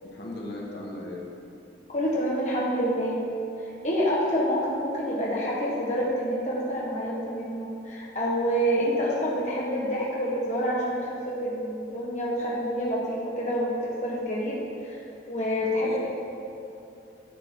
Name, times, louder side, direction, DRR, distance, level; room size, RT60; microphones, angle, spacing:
voice 1, 0.0-1.3 15.6-16.0, left 1 dB, 60° left, -3 dB, 1.6 m, -38 dB
voice 2, 1.9-3.2 3.6-15.0 15.3-16.0, equal, 40° left, -5 dB, 1.5 m, -27 dB
11.0 x 7.9 x 4.7 m, 2.8 s
head